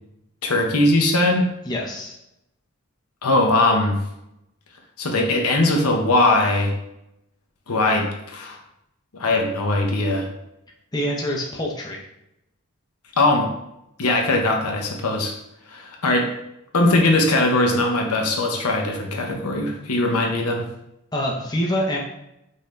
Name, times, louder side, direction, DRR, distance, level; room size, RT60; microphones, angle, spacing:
voice 1, 0.4-1.5 3.2-4.0 5.0-6.7 7.7-8.6 9.1-10.3 13.2-13.5 14.0-15.3 15.7-16.3 16.7-20.6, left 2 dB, 80° left, 2 dB, 0.8 m, -20 dB
voice 2, 1.7-2.1 10.9-12.0 21.1-22.0, equal, 20° left, -3 dB, 0.6 m, -25 dB
5.5 x 2.7 x 3.2 m, 0.83 s
head